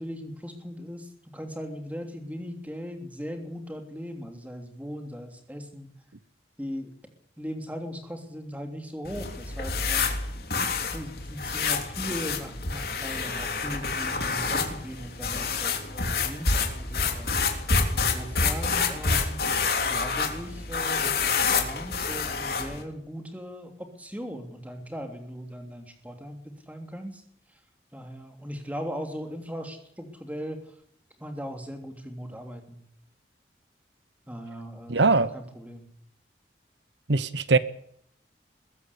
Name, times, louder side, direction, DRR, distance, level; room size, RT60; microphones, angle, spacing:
voice 1, 0.0-5.9 6.6-6.9 7.4-10.1 10.9-17.4 17.9-19.5 19.9-27.2 27.9-30.6 31.2-32.8 34.3-35.9, equal, 10° right, 3.1 m, -38 dB
sound 1, 9.0-22.8, left 4 dB, 55° left, 3.4 m, -28 dB
voice 2, 34.9-35.3 37.1-37.6, right 3 dB, 85° right, 1.0 m, -21 dB
21.5 x 15.0 x 8.6 m
head